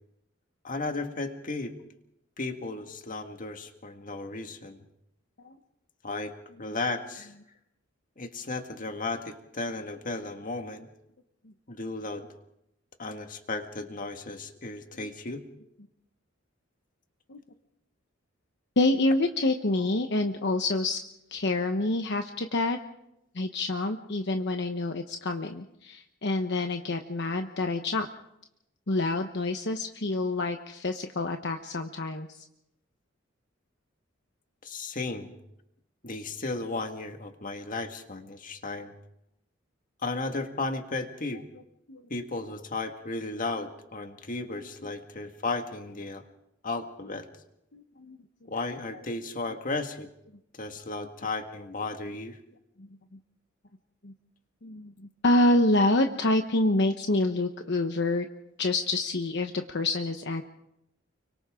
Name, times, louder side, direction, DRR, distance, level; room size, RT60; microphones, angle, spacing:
voice 1, 0.6-1.8 2.4-4.8 6.0-7.3 8.2-10.9 11.7-12.3 13.0-15.4 34.6-35.3 36.0-38.9 40.0-41.5 42.1-46.2 46.6-47.3 48.5-50.1 50.6-52.4, left 3 dB, 45° left, 5 dB, 1.9 m, -34 dB
voice 2, 18.8-21.0 21.3-22.8 23.3-28.1 28.9-32.5 41.9-42.0 47.7-48.2 52.8-52.9 54.0-54.1 54.6-58.2 58.6-60.4, left 2 dB, 60° left, 5 dB, 1.1 m, -27 dB
30.0 x 24.0 x 3.8 m, 0.82 s
head